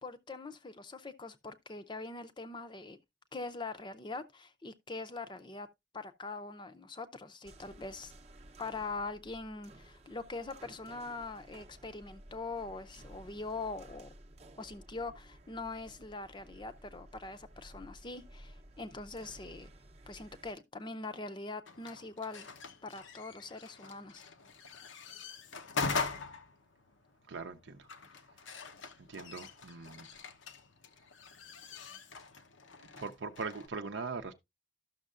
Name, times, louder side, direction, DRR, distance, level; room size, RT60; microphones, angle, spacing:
voice 1, 0.0-3.0 3.3-5.7 5.9-8.1 8.6-14.1 14.6-19.7 20.1-22.5 22.8-24.2, left 3 dB, 25° left, 0.6 m, -43 dB
sound 1, 7.4-20.5, right 1 dB, 35° right, 0.7 m, -55 dB
sound 2, 21.7-33.7, left 4 dB, 85° left, 0.9 m, -42 dB
voice 2, 27.3-27.8 29.1-30.1 32.8-34.3, right 4 dB, 70° right, 0.6 m, -41 dB
12.5 x 6.4 x 2.4 m
head